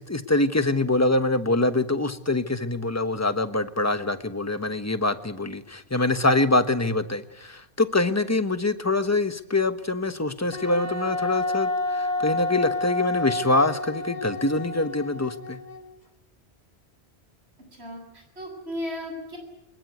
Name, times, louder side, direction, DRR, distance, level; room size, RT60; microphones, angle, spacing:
voice 1, 0.0-15.6, left 2 dB, 15° left, 10 dB, 1.1 m, -24 dB
Wind instrument woodwind instrument, 10.5-16.0, left 2 dB, 40° left, 2.9 m, -29 dB
voice 2, 17.8-19.4, left 1 dB, 75° right, 3 dB, 7.8 m, -35 dB
23.5 x 21.5 x 9.5 m, 0.87 s
omnidirectional pair, 1.1 m